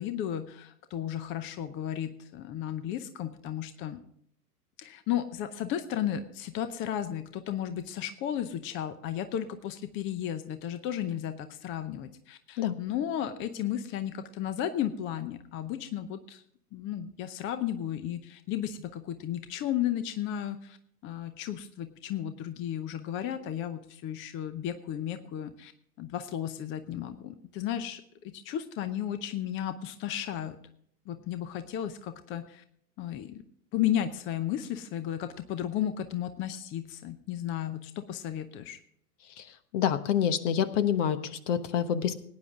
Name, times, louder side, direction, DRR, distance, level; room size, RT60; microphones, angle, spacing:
voice 1, 0.0-4.0 4.8-16.4 16.7-20.8 21.0-25.7 26.0-30.6 31.1-32.6 33.0-33.4 33.7-38.8, left 10 dB, 25° left, 11 dB, 0.7 m, -34 dB
voice 2, 39.7-42.1, left 9 dB, 50° left, 13 dB, 1.2 m, -27 dB
18.0 x 9.7 x 3.7 m, 0.67 s
hypercardioid pair, 105°, 47 cm